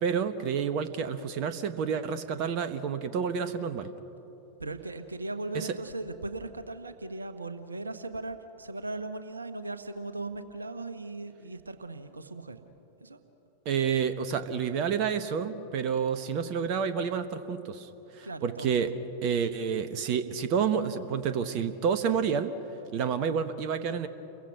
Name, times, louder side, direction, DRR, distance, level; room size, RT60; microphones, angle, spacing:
voice 1, 0.0-3.9 5.5-5.7 13.6-18.9 19.2-22.5 22.9-24.1, right 7 dB, 40° right, 10 dB, 1.1 m, -29 dB
voice 2, 4.6-12.6 13.0-13.2 18.2-18.7, right 2 dB, 80° right, 9 dB, 1.3 m, -38 dB
30.0 x 23.0 x 6.0 m, 3.0 s
figure-of-eight pair, 90°, 0 cm